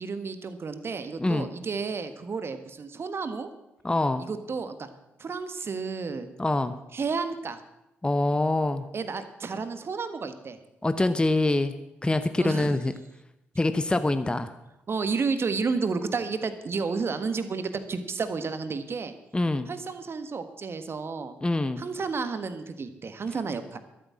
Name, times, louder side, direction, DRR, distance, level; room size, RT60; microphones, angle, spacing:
voice 1, 0.0-3.5 4.2-4.9 5.2-6.3 6.9-7.6 8.9-10.6 12.4-12.8 14.9-19.1 19.7-21.3 21.8-23.8, right 4 dB, 40° right, 10 dB, 1.5 m, -31 dB
voice 2, 3.8-4.2 6.4-6.7 8.0-8.8 10.8-11.7 12.0-12.9 13.6-14.5 19.3-19.7 21.4-21.8, left 2 dB, 15° left, 11 dB, 0.9 m, -25 dB
12.5 x 8.8 x 7.5 m, 0.90 s
figure-of-eight pair, 40°, 6 cm